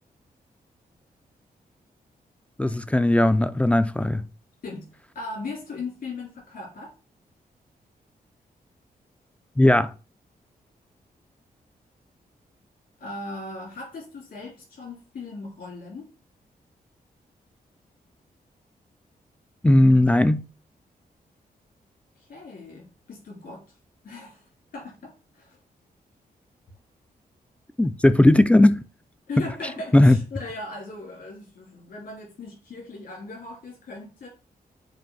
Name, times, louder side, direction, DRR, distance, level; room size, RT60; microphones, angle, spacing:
voice 1, 2.6-4.2 9.6-9.9 19.6-20.4 27.8-28.8 29.9-30.2, left 1 dB, 10° left, 0.3 m, -17 dB
voice 2, 5.1-6.9 13.0-16.1 22.3-23.6 24.0-24.4 24.7-25.6 29.3-34.3, left 3 dB, 70° left, 3.4 m, -38 dB
7.7 x 2.6 x 5.5 m
wide cardioid pair, 170°, 16 cm